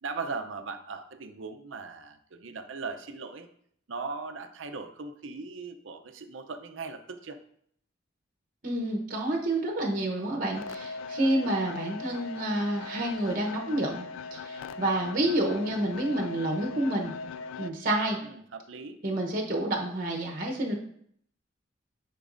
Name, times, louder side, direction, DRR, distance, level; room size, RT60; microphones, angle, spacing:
voice 1, 0.0-3.5 3.9-7.4 10.2-10.6 18.2-19.0, right 4 dB, 75° right, 8 dB, 0.6 m, -39 dB
voice 2, 8.6-17.1 17.6-18.2 19.0-20.7, right 1 dB, 45° right, 0 dB, 1.0 m, -29 dB
sound 1, 10.5-17.7, left 4 dB, 85° left, 0.3 m, -40 dB
10.0 x 4.7 x 2.6 m, 0.67 s
head